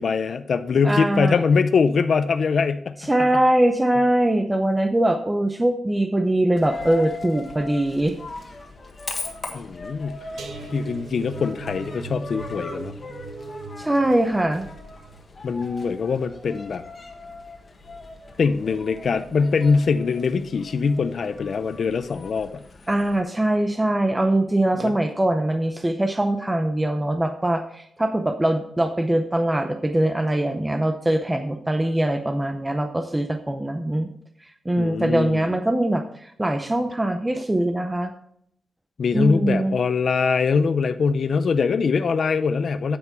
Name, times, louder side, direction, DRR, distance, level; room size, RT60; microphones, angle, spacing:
voice 1, 0.0-3.1 9.5-10.2 10.7-12.9 15.4-16.8 18.4-22.6 24.8-24.9 34.8-35.6 39.0-43.0, left 5 dB, 50° left, 10 dB, 0.5 m, -23 dB
voice 2, 0.8-1.4 3.1-8.1 13.8-14.7 22.9-34.1 34.7-38.1 39.1-39.8, right 1 dB, 10° right, 6 dB, 0.6 m, -22 dB
Coin (dropping), 6.6-23.2, left 3 dB, 35° left, 1.6 m, -39 dB
sound 1, 10.4-17.4 17.8-18.1 18.4-18.6, right 3 dB, 80° right, 1.4 m, -40 dB
9.3 x 8.2 x 4.4 m, 0.69 s
wide cardioid pair, 160°, 0 cm